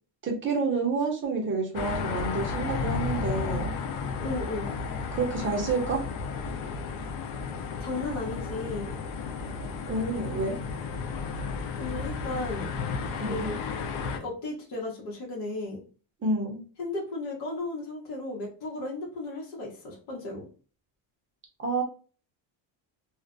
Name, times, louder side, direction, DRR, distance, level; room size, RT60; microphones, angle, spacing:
voice 1, 0.2-3.7 5.1-6.0 9.5-10.6 13.2-13.5 16.2-16.6 21.6-21.8, right 3 dB, 25° right, 1 dB, 0.6 m, -29 dB
sound 1, 1.7-14.2, left 5 dB, 80° left, 0.6 m, -33 dB
voice 2, 4.2-4.7 7.5-8.9 11.8-12.7 13.3-13.6 14.2-15.8 16.8-20.5, left 2 dB, 60° left, -3 dB, 1.0 m, -35 dB
2.4 x 2.1 x 2.4 m, 0.38 s
cardioid pair, 150°, 46 cm